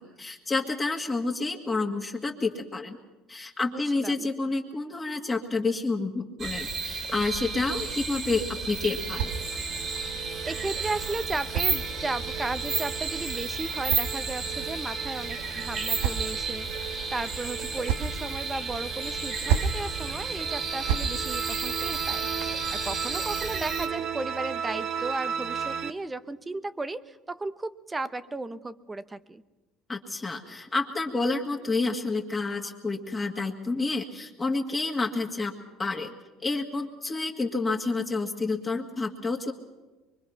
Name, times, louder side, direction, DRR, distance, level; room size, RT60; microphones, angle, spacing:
voice 1, 0.0-3.0 3.3-9.3 29.9-35.5 35.8-36.1 36.4-39.5, left 3 dB, 15° left, 1 dB, 1.8 m, -29 dB
voice 2, 3.6-4.3 10.4-29.4, right 2 dB, 15° right, 14 dB, 0.9 m, -35 dB
sound 1, 6.4-23.9, right 4 dB, 35° right, 2.6 m, -32 dB
sound 2, 8.6-25.9, right 7 dB, 50° right, 1.3 m, -37 dB
sound 3, 8.8-9.9 10.9-12.4 13.3-14.7 15.5-16.6 17.5-18.2 19.2-19.9 20.6-21.2, right 7 dB, 85° right, 1.3 m, -32 dB
24.0 x 24.0 x 5.8 m, 1.2 s
cardioid pair, 135°, 0 cm